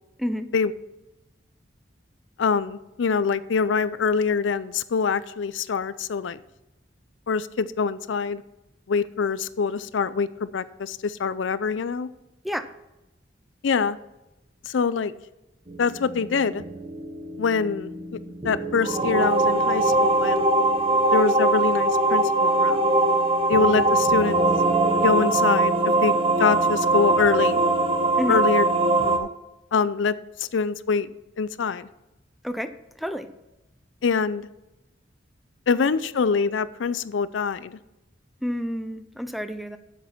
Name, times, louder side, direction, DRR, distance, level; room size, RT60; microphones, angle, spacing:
voice 1, 2.4-6.4 7.3-8.4 8.9-12.1 13.6-14.0 14.7-15.1 15.8-16.6 17.4-17.9 18.4-20.5 21.1-22.9 23.5-24.4 25.0-25.8 26.0-27.6 28.3-28.6 29.0-29.3 29.7-31.1 31.4-31.9 34.0-34.5 35.7-37.8, left 5 dB, 85° left, 16 dB, 0.5 m, -24 dB
sound 1, 15.7-29.2, right 2 dB, 30° right, 0.9 m, -22 dB
voice 2, 38.4-39.8, equal, ahead, 10 dB, 0.5 m, -29 dB
7.9 x 7.3 x 5.9 m, 0.94 s
head